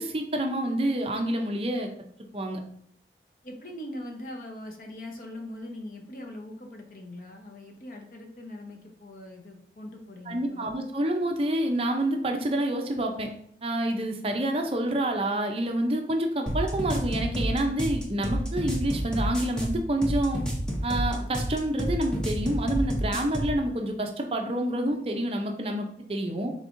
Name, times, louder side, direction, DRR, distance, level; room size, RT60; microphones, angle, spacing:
voice 1, 0.0-1.9 2.3-2.6 10.3-13.3 13.6-20.4 20.8-26.5, right 1 dB, 35° right, 3 dB, 0.5 m, -28 dB
voice 2, 3.4-10.7, left 1 dB, 50° left, 2 dB, 0.7 m, -41 dB
sound 1, 16.5-23.6, equal, 5° left, 0.6 m, -29 dB
5.1 x 3.5 x 2.5 m, 0.66 s
head